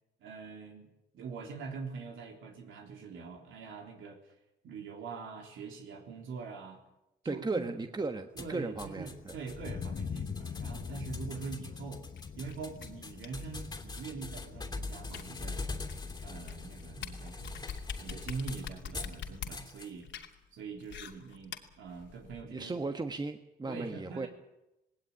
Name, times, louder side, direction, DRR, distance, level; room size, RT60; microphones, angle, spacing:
voice 1, 0.2-4.3 4.6-6.8 7.2-7.7 8.4-12.0 12.3-15.6 16.1-17.6 18.0-20.1 20.5-22.9 23.7-24.3, right 5 dB, 80° right, 2 dB, 3.7 m, -43 dB
voice 2, 7.2-9.4 22.5-24.3, right 3 dB, 20° right, 7 dB, 1.4 m, -36 dB
sound 1, 8.4-19.2 19.5-19.9, left 3 dB, 20° left, 3.0 m, -43 dB
Thunder, 8.9-19.5, left 6 dB, 45° left, 1.4 m, -45 dB
sound 2, 12.2-22.4, left 8 dB, 70° left, 2.7 m, -46 dB
19.0 x 18.0 x 9.8 m, 0.91 s
cardioid pair, 90°, 20 cm